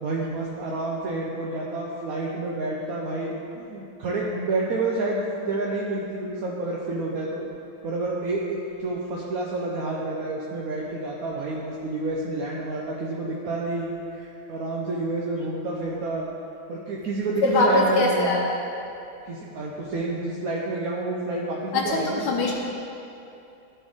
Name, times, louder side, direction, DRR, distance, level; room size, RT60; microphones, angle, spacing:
voice 1, 0.0-7.4 7.8-16.3 16.7-18.3 19.3-22.3, right 2 dB, 65° right, -3 dB, 0.9 m, -29 dB
voice 2, 17.4-18.6 21.7-22.5, left 2 dB, 65° left, -2 dB, 1.2 m, -22 dB
13.0 x 4.4 x 3.6 m, 2.7 s
omnidirectional pair, 2.2 m